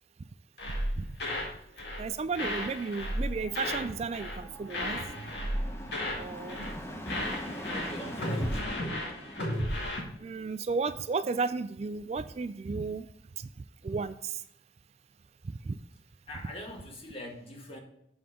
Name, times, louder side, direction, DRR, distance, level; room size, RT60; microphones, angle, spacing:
sound 1, 0.6-1.5 1.8-2.1 2.3-3.9 4.1-4.4 4.7-6.2 6.5-6.8 7.1-10.0, left 1 dB, 70° left, 2.1 m, -34 dB
voice 1, 2.0-5.0 6.2-6.7 7.1-7.2 10.2-13.1 13.4-13.5 13.8-14.4 15.4-15.8, right 4 dB, 35° right, 11 dB, 0.3 m, -33 dB
sound 2, 2.7-10.1, equal, 15° left, 0.9 m, -43 dB
voice 2, 7.7-8.9 16.3-17.8, left 1 dB, 35° left, 1 dB, 1.7 m, -42 dB
7.7 x 6.9 x 3.7 m, 0.78 s
head